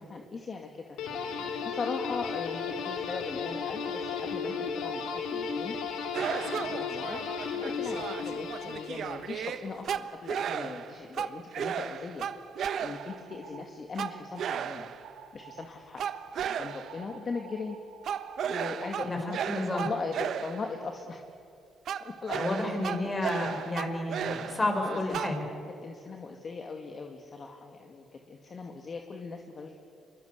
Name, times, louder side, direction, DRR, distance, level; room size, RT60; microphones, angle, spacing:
voice 1, 0.1-1.0 1.6-5.8 6.4-7.2 7.6-12.3 12.8-14.9 15.3-16.0 16.6-17.8 18.5-19.4 19.7-21.2 22.0-22.7 23.0-23.2 23.5-23.6 24.8-25.2 25.8-29.7, left 4 dB, 40° left, 3 dB, 2.2 m, -39 dB
sound 1, 1.0-9.3, left 5 dB, 90° left, 2.8 m, -34 dB
sound 2, 6.1-13.3 14.0-15.2 16.0-17.1 18.0-20.8 21.9-25.4, right 8 dB, 65° right, 1.1 m, -35 dB
sound 3, 12.7-13.6 14.0-14.7 15.0-15.7 16.0-18.7, right 8 dB, 80° right, 2.7 m, -49 dB
voice 2, 19.5-19.9 22.3-25.4, left 2 dB, 25° left, 4 dB, 6.0 m, -31 dB
26.5 x 23.0 x 8.3 m, 2.6 s
cardioid pair, 90°, 0 cm